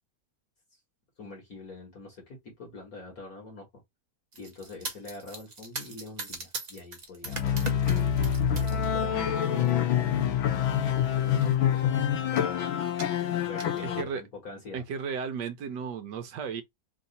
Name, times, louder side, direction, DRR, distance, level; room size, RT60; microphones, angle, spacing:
voice 1, 1.2-3.7 4.4-8.0 8.5-10.3 11.2-12.6 13.4-14.8, left 3 dB, 50° left, 2.0 m, -45 dB
sound 1, 4.3-8.9 9.3-9.7 10.5-10.7 11.0-11.1 11.3-11.9 12.4-12.5 13.0-13.8, right 3 dB, 45° right, 0.5 m, -40 dB
sound 2, 7.2-14.0, left 9 dB, 85° left, 1.6 m, -26 dB
voice 2, 13.8-14.2 14.7-16.6, right 6 dB, 70° right, 1.3 m, -34 dB
3.9 x 2.8 x 4.1 m
omnidirectional pair, 2.1 m